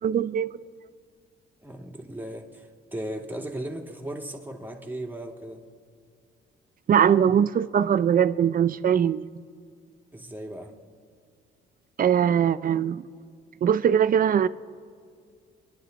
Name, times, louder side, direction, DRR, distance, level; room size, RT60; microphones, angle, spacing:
voice 1, 0.0-0.6 6.9-9.3 12.0-13.1 13.6-14.5, right 8 dB, 45° right, 15 dB, 0.5 m, -21 dB
voice 2, 1.6-5.6 10.1-10.8, right 1 dB, 10° right, 1 dB, 2.2 m, -37 dB
27.0 x 11.0 x 3.9 m, 2.2 s
cardioid pair, 90°, 20 cm